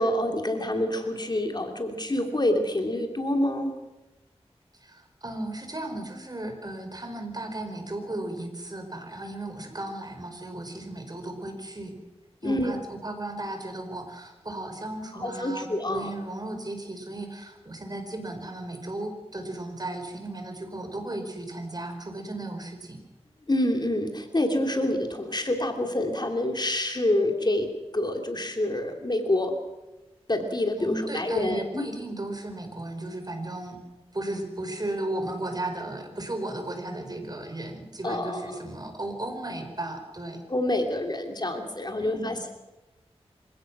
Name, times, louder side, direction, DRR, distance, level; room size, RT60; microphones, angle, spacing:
voice 1, 0.0-3.7 12.4-12.7 15.1-16.1 23.5-27.7 27.9-29.5 30.3-31.8 38.0-38.6 40.5-42.5, left 1 dB, 40° left, 4 dB, 3.0 m, -27 dB
voice 2, 4.8-12.0 12.4-23.0 30.8-33.8 34.1-40.4 42.0-42.4, right 1 dB, 35° right, 5 dB, 4.7 m, -35 dB
26.5 x 16.5 x 6.1 m, 1.1 s
wide cardioid pair, 55°, 11 cm